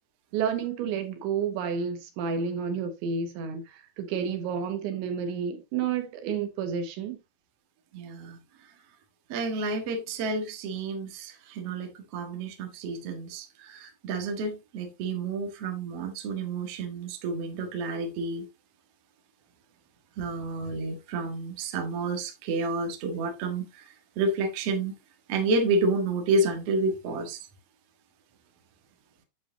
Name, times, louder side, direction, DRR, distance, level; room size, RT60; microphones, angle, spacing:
voice 1, 0.3-7.2, right 6 dB, 70° right, 3.5 m, -30 dB
voice 2, 7.9-8.4 9.3-18.5 20.2-23.8 24.1-24.9 25.3-27.4, right 2 dB, 85° right, 1.3 m, -30 dB
9.6 x 7.0 x 2.9 m
omnidirectional pair, 5.9 m